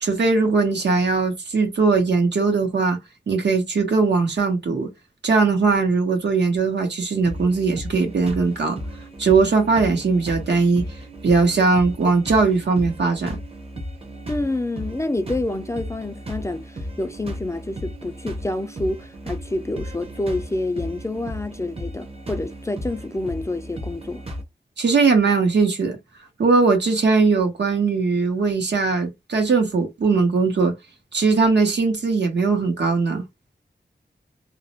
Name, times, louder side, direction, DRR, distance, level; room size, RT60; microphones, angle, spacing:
voice 1, 0.0-3.0 3.3-4.9 5.2-8.8 9.2-10.8 11.2-13.4 24.8-26.0 26.4-30.7 31.1-33.2, right 4 dB, 75° right, 1.0 m, -19 dB
sound 1, 7.2-24.4, equal, 35° right, 0.7 m, -35 dB
voice 2, 14.3-24.2, left 2 dB, 15° left, 0.3 m, -28 dB
2.4 x 2.0 x 2.8 m
wide cardioid pair, 125°, 18 cm